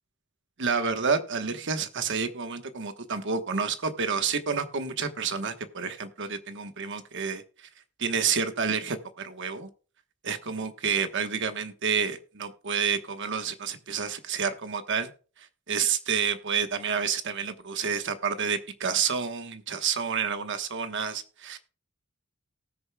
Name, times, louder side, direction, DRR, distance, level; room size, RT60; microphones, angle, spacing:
voice 1, 0.6-7.4 8.0-9.7 10.2-15.1 15.7-21.6, right 6 dB, 60° right, 9 dB, 1.2 m, -29 dB
19.0 x 6.7 x 2.3 m, 0.37 s
head